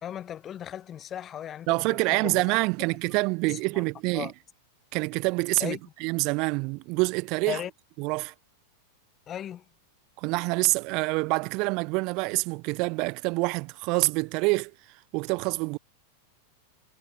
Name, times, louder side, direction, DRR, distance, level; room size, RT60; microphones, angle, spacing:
voice 1, 0.0-1.8 2.1-2.5 3.5-3.8 4.1-4.3 5.6-5.8 7.5-7.7 9.3-9.6, left 10 dB, 25° left, 1.4 m, -36 dB
voice 2, 1.7-4.3 4.9-7.6 8.0-8.3 10.2-14.7 15.1-15.8, right 28 dB, 45° right, 1.9 m, -26 dB
figure-of-eight pair, 90°, 0 cm